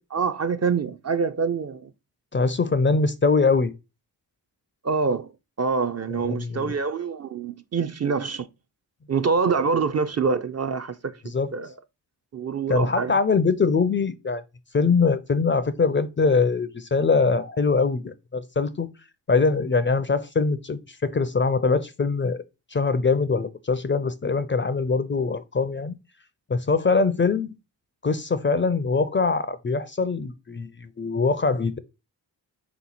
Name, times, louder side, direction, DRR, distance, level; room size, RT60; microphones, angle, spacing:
voice 1, 0.1-1.9 4.8-5.3 5.6-8.5 9.1-11.7 12.3-13.1, right 5 dB, 40° right, 0.4 m, -25 dB
voice 2, 2.3-3.7 6.1-6.7 11.3-11.5 12.7-14.4 14.7-18.9 19.3-22.4 22.7-26.0 26.5-27.5 28.0-31.8, left 4 dB, 30° left, 0.4 m, -23 dB
3.5 x 3.0 x 4.0 m
cardioid pair, 40°, 43 cm